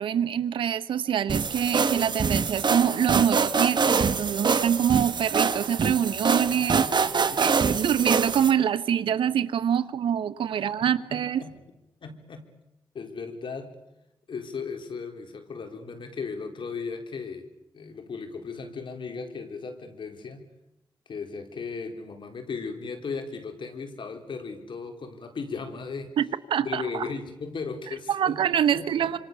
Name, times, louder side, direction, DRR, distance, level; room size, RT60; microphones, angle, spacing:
voice 1, 0.0-6.8 7.4-11.4 26.2-26.3 26.5-27.1 28.1-29.2, right 9 dB, 90° right, 14 dB, 1.2 m, -25 dB
sound 1, 1.3-8.5, right 5 dB, 60° right, 1.7 m, -25 dB
voice 2, 6.6-7.5 10.8-11.6 12.0-12.5 12.9-13.7 14.3-17.5 17.7-20.4 21.1-26.1 26.6-28.4 28.7-29.2, left 5 dB, 75° left, 5 dB, 4.3 m, -37 dB
27.0 x 26.0 x 7.0 m, 0.92 s
cardioid pair, 50°, 9 cm